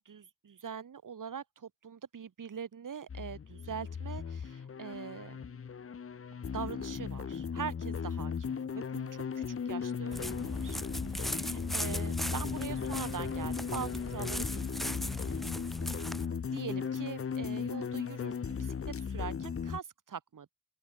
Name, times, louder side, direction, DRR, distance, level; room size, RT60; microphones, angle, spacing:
voice 1, 0.0-5.4 6.5-10.8 11.2-15.5 16.5-20.5, right 7 dB, 80° right, 4.0 m, -43 dB
sound 1, 3.1-19.8, left 6 dB, 45° left, 0.9 m, -37 dB
sound 2, 10.1-16.3, equal, ahead, 2.2 m, -38 dB
open air
wide cardioid pair, 135°, 31 cm